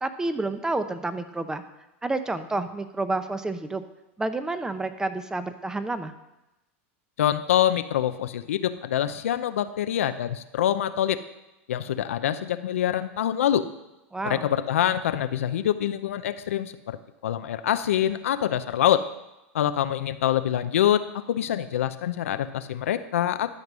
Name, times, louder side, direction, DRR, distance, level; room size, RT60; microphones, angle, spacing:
voice 1, 0.0-1.6 2.0-3.8 4.2-6.1 14.1-14.5, right 2 dB, 10° right, 10 dB, 0.7 m, -29 dB
voice 2, 7.2-11.2 11.7-13.6 14.2-17.0 17.2-19.0 19.5-23.5, left 11 dB, 90° left, 11 dB, 0.6 m, -25 dB
12.5 x 5.3 x 6.2 m, 0.96 s
supercardioid pair, 115°, 7 cm